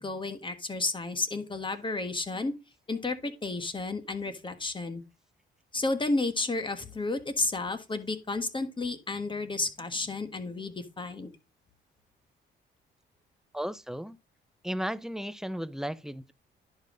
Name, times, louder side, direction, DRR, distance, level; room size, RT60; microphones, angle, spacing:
voice 1, 0.0-2.5 2.9-5.0 5.7-11.3, left 3 dB, 25° left, 1.5 m, -32 dB
voice 2, 13.5-14.2 14.6-16.3, equal, ahead, 0.5 m, -34 dB
10.5 x 5.4 x 3.8 m
cardioid pair, 90°, 20 cm